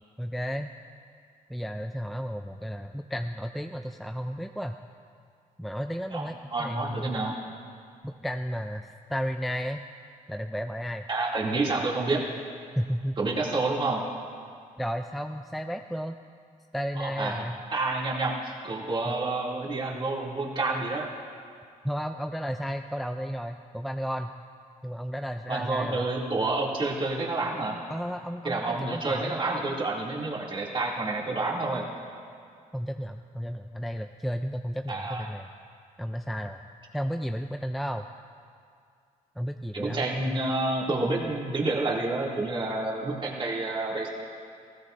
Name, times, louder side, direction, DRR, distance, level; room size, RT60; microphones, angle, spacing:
voice 1, 0.2-0.7 1.5-4.8 5.6-7.1 8.0-9.8 10.3-11.1 12.7-13.2 14.8-16.2 16.7-17.6 19.1-19.2 21.8-24.3 24.8-26.1 27.9-29.4 32.7-35.5 36.0-36.6 36.9-38.1 39.4-40.5, equal, ahead, 6 dB, 0.4 m, -33 dB
voice 2, 6.5-7.3 11.1-12.2 13.2-14.0 17.0-17.4 17.7-21.1 25.5-27.8 28.4-31.9 34.9-35.3 39.7-44.1, right 2 dB, 35° right, -3 dB, 2.6 m, -29 dB
19.0 x 15.5 x 2.6 m, 2.3 s
cardioid pair, 90°, 14 cm